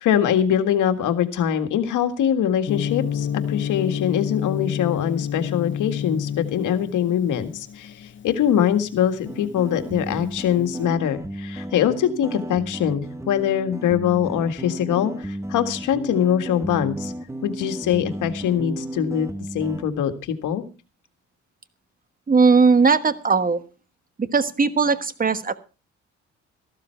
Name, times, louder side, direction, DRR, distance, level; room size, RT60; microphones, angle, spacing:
voice 1, 0.0-17.1 17.4-19.3 19.5-20.7, left 9 dB, 80° left, 8 dB, 1.8 m, -23 dB
Gong, 2.7-10.7, left 8 dB, 40° left, 0.8 m, -30 dB
sound 1, 9.3-19.9, right 1 dB, 10° right, 1.2 m, -34 dB
voice 2, 22.3-23.6 24.2-25.5, right 4 dB, 30° right, 12 dB, 1.3 m, -18 dB
14.5 x 12.5 x 4.5 m, 0.33 s
cardioid pair, 90°, 30 cm